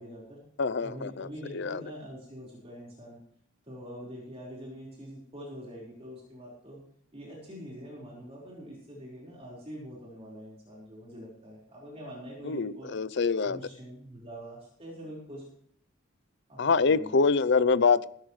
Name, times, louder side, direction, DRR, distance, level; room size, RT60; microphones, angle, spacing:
voice 1, 0.0-0.4 0.8-3.2 3.6-6.8 7.1-12.9 13.4-15.5 16.5-17.2, equal, 30° right, -5 dB, 4.8 m, -44 dB
voice 2, 0.6-1.3 1.5-1.8 12.4-13.6 16.6-18.1, left 4 dB, 60° left, 16 dB, 0.6 m, -25 dB
20.0 x 14.0 x 3.3 m, 0.63 s
head